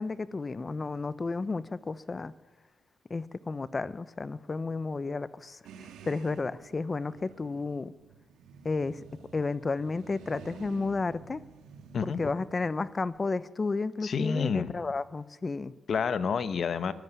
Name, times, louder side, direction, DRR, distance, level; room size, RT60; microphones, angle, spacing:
voice 1, 0.0-2.3 3.1-5.6 6.0-7.9 8.6-9.0 9.3-11.4 12.0-15.7, left 3 dB, 30° left, 16 dB, 1.0 m, -32 dB
sound 1, 5.6-13.2, right 6 dB, 80° right, 2.2 m, -51 dB
voice 2, 11.9-12.3 14.0-14.7 15.9-16.9, left 6 dB, 50° left, 12 dB, 1.4 m, -29 dB
23.5 x 11.5 x 9.7 m, 1.2 s
cardioid pair, 90°, 0 cm